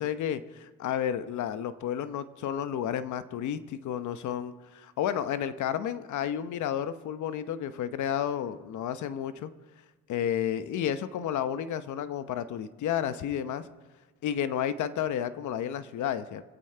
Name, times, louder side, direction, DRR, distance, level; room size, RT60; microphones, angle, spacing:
voice 1, 0.0-9.5 10.1-13.7 14.2-16.4, left 9 dB, 75° left, 12 dB, 0.9 m, -31 dB
25.5 x 8.5 x 4.5 m, 1.3 s
cardioid pair, 90°, 30 cm